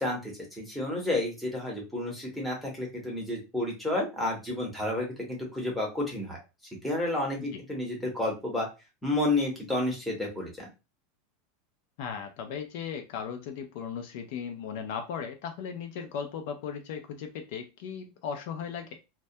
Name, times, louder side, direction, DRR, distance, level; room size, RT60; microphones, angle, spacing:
voice 1, 0.0-6.4 6.8-8.7 9.0-10.7, left 2 dB, ahead, -3 dB, 0.7 m, -31 dB
voice 2, 12.0-19.0, left 7 dB, 55° left, 5 dB, 0.4 m, -37 dB
2.2 x 2.1 x 2.6 m, 0.27 s
supercardioid pair, 170°, 0 cm